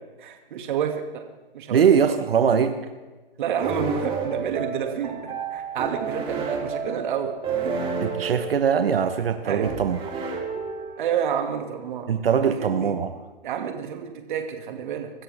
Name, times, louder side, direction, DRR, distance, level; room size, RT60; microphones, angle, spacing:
voice 1, 0.2-1.2 1.5-1.8 3.4-7.3 7.6-7.7 9.4-9.7 11.0-12.1 12.4-12.9 13.4-15.1, right 8 dB, 55° right, 4 dB, 2.4 m, -29 dB
voice 2, 1.7-2.8 8.0-10.0 12.1-13.1, right 7 dB, 75° right, 8 dB, 1.3 m, -21 dB
sound 1, 3.6-11.3, right 5 dB, 20° right, 3.4 m, -31 dB
24.5 x 13.5 x 3.6 m, 1.2 s
hypercardioid pair, 130°, 29 cm